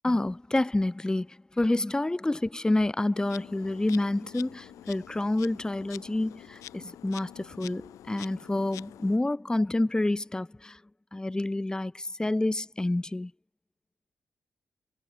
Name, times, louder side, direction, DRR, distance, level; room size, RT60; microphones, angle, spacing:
voice 1, 0.0-10.8 11.1-13.3, left 2 dB, 15° left, 0.4 m, -28 dB
Insect, 3.1-9.2, left 13 dB, 85° left, 1.0 m, -47 dB
supercardioid pair, 40°, 5 cm